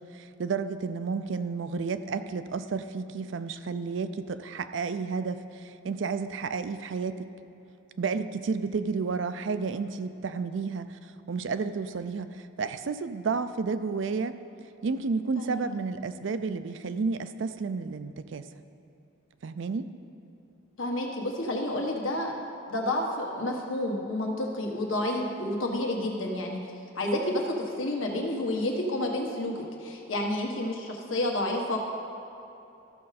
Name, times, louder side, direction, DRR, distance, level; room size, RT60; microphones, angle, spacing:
voice 1, 0.0-7.3 8.0-14.4 14.8-18.5 19.4-19.9, right 4 dB, 65° right, 11 dB, 0.4 m, -31 dB
voice 2, 20.8-22.3 22.7-26.6 27.0-29.5 29.8-31.8, left 1 dB, 80° left, 0 dB, 1.4 m, -30 dB
13.5 x 6.3 x 4.2 m, 2.9 s
head